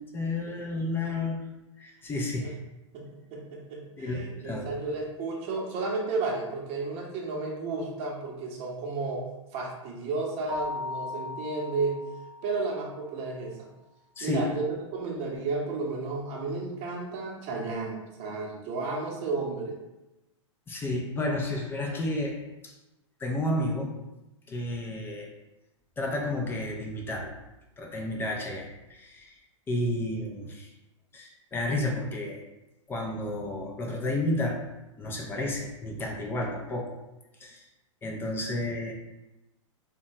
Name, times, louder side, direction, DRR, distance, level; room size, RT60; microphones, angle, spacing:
voice 1, 0.0-1.4 1.8-2.5 4.0-4.7 14.2-14.5 20.7-22.7 23.2-24.0 24.5-25.3 26.0-27.3 27.8-29.4 29.7-30.7 31.1-32.4 32.9-34.6 35.0-37.0 37.4-37.6 38.0-38.9, left 1 dB, 15° left, 0 dB, 0.4 m, -31 dB
voice 2, 2.9-9.3 9.5-12.0 12.4-13.7 14.2-14.6 14.9-19.8, right 3 dB, 35° right, -2 dB, 0.8 m, -32 dB
Keyboard (musical), 10.5-12.9, left 3 dB, 85° right, 0.7 m, -38 dB
2.8 x 2.2 x 2.7 m, 0.98 s
hypercardioid pair, 120°, 16 cm